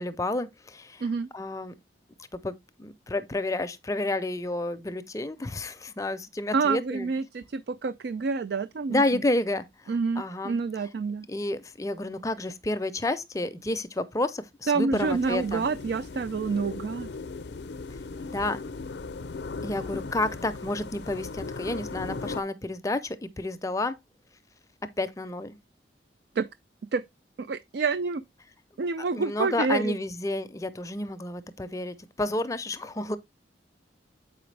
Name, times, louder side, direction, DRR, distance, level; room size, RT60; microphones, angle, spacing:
voice 1, 0.0-1.0 1.3-1.7 2.4-7.1 8.9-9.7 10.2-10.6 11.3-15.7 18.3-18.6 19.6-24.0 25.0-25.6 29.1-33.2, left 2 dB, 20° left, 0.5 m, -30 dB
voice 2, 6.5-9.2 9.9-11.3 14.7-17.1 26.4-26.5 26.9-27.0 27.4-28.2 28.8-30.0, right 4 dB, 65° right, 0.4 m, -28 dB
sound 1, 14.9-22.4, left 3 dB, 70° left, 0.5 m, -38 dB
7.7 x 5.0 x 3.2 m
head